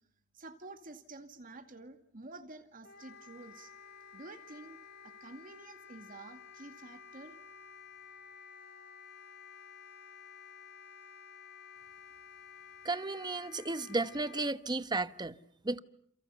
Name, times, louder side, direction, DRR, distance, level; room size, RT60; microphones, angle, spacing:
voice 1, 0.3-3.7 4.1-4.8 5.0-7.4, right 2 dB, 40° right, 2.2 m, -50 dB
Wind instrument woodwind instrument, 2.8-14.6, left 6 dB, 50° left, 1.6 m, -53 dB
voice 2, 12.8-15.8, right 2 dB, 20° right, 1.1 m, -34 dB
29.0 x 28.5 x 7.0 m
head